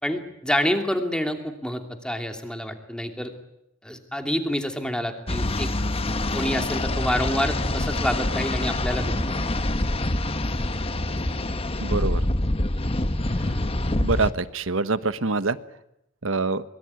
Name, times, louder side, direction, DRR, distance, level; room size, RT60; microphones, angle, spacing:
voice 1, 0.0-3.3 3.8-5.7 6.3-9.6, equal, 5° left, 5 dB, 2.8 m, -28 dB
sound 1, 5.3-14.3, left 1 dB, 30° left, 1.2 m, -26 dB
voice 2, 11.8-12.2 14.0-15.6 16.2-16.6, right 3 dB, 75° right, 13 dB, 1.2 m, -25 dB
24.0 x 22.5 x 9.6 m, 0.82 s
head